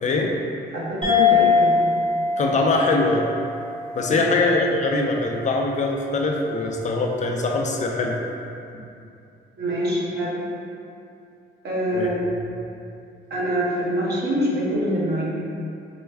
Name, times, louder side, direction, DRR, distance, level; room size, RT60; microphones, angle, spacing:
voice 1, 0.0-0.4 2.4-3.3 3.9-8.2 11.9-12.1, left 3 dB, 35° left, 0 dB, 0.5 m, -22 dB
voice 2, 0.7-1.7 4.1-4.3 9.6-10.4 11.6-12.4 13.3-15.2, right 1 dB, 55° right, -6 dB, 1.0 m, -25 dB
sound 1, 1.0-5.9, left 5 dB, 25° right, 1.0 m, -23 dB
4.3 x 2.2 x 3.3 m, 2.6 s
cardioid pair, 90°, 20 cm